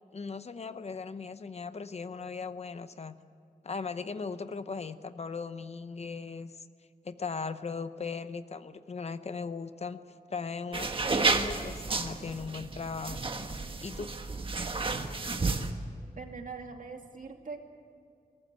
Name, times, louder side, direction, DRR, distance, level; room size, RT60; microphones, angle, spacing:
voice 1, 0.1-3.1 3.6-6.7 7.0-10.0 10.3-13.2 13.8-14.1, left 5 dB, 45° left, 11 dB, 0.8 m, -38 dB
sound 1, 10.7-15.7, right 3 dB, 35° right, 1.4 m, -31 dB
voice 2, 16.2-17.6, right 4 dB, 60° right, 4 dB, 2.4 m, -42 dB
22.5 x 18.5 x 9.5 m, 2.3 s
wide cardioid pair, 170°, 15 cm